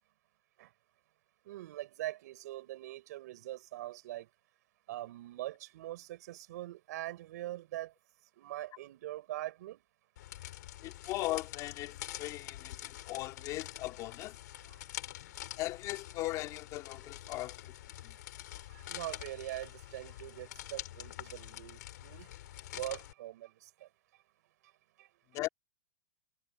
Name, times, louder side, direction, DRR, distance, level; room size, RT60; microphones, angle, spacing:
voice 1, 1.4-4.3 4.9-7.9 8.4-9.8 14.7-14.8 18.7-22.3 22.7-23.9 25.0-25.1, right 15 dB, 60° right, 7.0 m, -43 dB
sound 1, 10.2-23.1, left 14 dB, 65° left, 3.4 m, -46 dB
voice 2, 10.8-14.4 15.6-17.7 18.0-18.1 25.3-25.5, left 17 dB, 30° left, 3.4 m, -38 dB
supercardioid pair, 155°, 10 cm